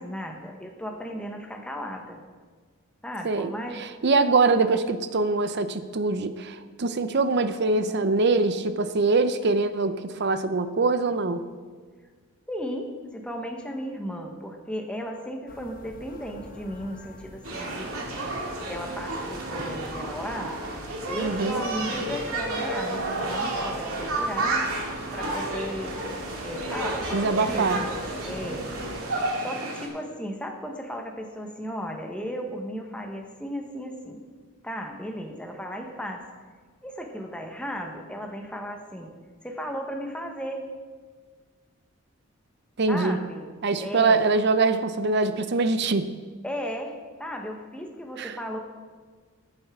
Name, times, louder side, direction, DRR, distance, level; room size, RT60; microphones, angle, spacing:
voice 1, 0.0-2.2 3.0-3.8 12.5-17.9 18.7-20.6 21.1-24.7 25.1-26.0 26.4-28.0 28.2-28.7 29.4-34.2 34.6-36.3 36.8-39.1 39.4-40.7 42.9-43.5 43.8-44.2 46.4-48.6, equal, 5° left, 2 dB, 1.0 m, -35 dB
voice 2, 3.2-11.5 21.2-21.6 27.1-27.8 42.8-43.2 43.6-46.1 48.2-48.4, right 3 dB, 50° right, 11 dB, 0.6 m, -23 dB
sound 1, 15.5-29.0, left 1 dB, 40° left, 1.0 m, -45 dB
sound 2, 17.4-29.9, right 2 dB, 75° right, 2.1 m, -31 dB
14.0 x 9.1 x 3.6 m, 1.5 s
head